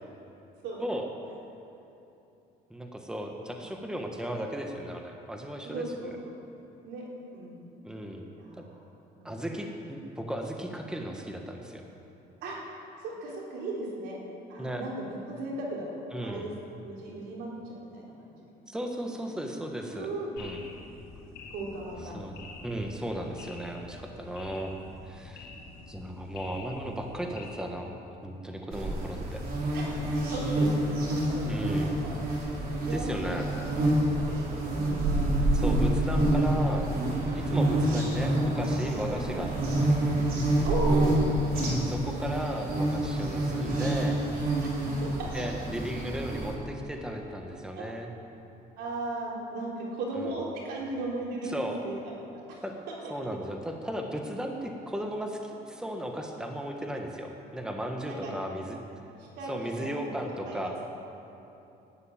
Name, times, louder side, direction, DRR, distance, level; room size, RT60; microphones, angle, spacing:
voice 1, 2.7-5.9 7.8-8.2 8.5-8.6 9.2-11.9 14.6-14.8 16.1-16.5 18.7-20.1 20.4-20.6 22.0-24.7 25.0-25.5 25.9-29.4 31.5-31.9 32.9-33.5 35.5-36.9 37.3-40.0 41.5-44.2 45.3-48.1 51.4-51.8 52.6-52.7 53.1-58.8 59.5-60.8, right 1 dB, 5° right, 2 dB, 1.4 m, -35 dB
voice 2, 5.6-6.4 6.8-7.0 7.3-7.7 8.3-8.7 9.2-9.3 12.4-12.6 13.0-14.2 14.5-16.0 16.2-18.0 19.9-20.4 21.5-22.1 29.7-32.1 32.4-32.5 32.9-33.4 33.6-35.1 37.6-37.9 39.3-39.4 40.6-41.4 44.6-45.3 47.7-47.8 48.8-52.2 52.5-52.6 58.1-58.4 59.2-60.1 60.4-60.7, right 2 dB, 80° right, -3 dB, 3.7 m, -36 dB
sound 1, 20.4-27.4, left 3 dB, 75° left, 3.3 m, -47 dB
sound 2, 28.7-46.5, right 1 dB, 60° right, 3.9 m, -27 dB
11.5 x 9.7 x 8.8 m, 2.9 s
cardioid pair, 110°, 17 cm